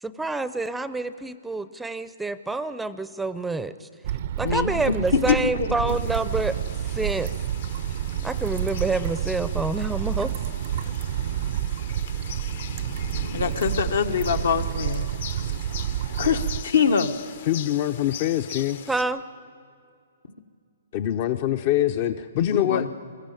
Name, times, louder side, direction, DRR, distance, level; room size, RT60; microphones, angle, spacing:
voice 1, 0.0-3.9 4.4-6.6 6.9-7.3 8.2-10.3 18.9-19.2, right 3 dB, 5° right, 13 dB, 0.5 m, -27 dB
sound 1, 4.0-16.6, right 11 dB, 50° right, 0.5 m, -29 dB
voice 2, 4.4-5.7 13.3-15.1 16.2-17.1 22.5-22.9, left 6 dB, 75° left, 7 dB, 1.2 m, -24 dB
sound 2, 5.9-19.0, left 8 dB, 60° left, 1.0 m, -40 dB
voice 3, 17.5-18.8 20.9-22.9, left 12 dB, 40° left, 9 dB, 0.6 m, -24 dB
22.0 x 14.5 x 9.1 m, 2.3 s
hypercardioid pair, 145°, 0 cm